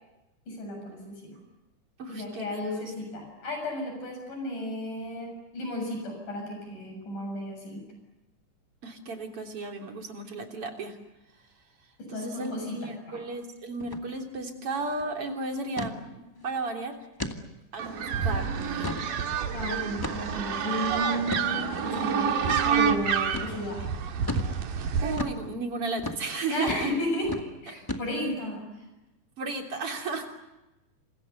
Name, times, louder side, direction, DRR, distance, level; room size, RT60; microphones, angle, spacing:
voice 1, 0.5-1.4 2.1-7.8 12.1-13.2 19.5-23.9 26.5-27.3 27.6-28.9, left 1 dB, 70° left, 3 dB, 8.8 m, -33 dB
voice 2, 2.0-2.6 8.8-11.0 12.1-17.0 17.7-18.9 25.0-26.9 29.4-30.3, right 3 dB, 45° right, 3 dB, 4.2 m, -34 dB
sound 1, 13.8-14.0 14.3-14.4 14.8-15.1 15.8-16.0 16.5-16.6 17.2-17.4 17.9-18.0 18.6-19.1 20.0-20.4 21.3-21.5 22.5-22.6 23.3-23.5 24.3-24.5 25.2-25.4 26.0-26.2 26.7-26.9 27.2-27.5 27.9-28.3, left 1 dB, 10° left, 1.1 m, -34 dB
sound 2, 17.8-25.2, right 7 dB, 90° right, 3.7 m, -28 dB
29.0 x 27.5 x 6.9 m, 0.98 s
omnidirectional pair, 3.8 m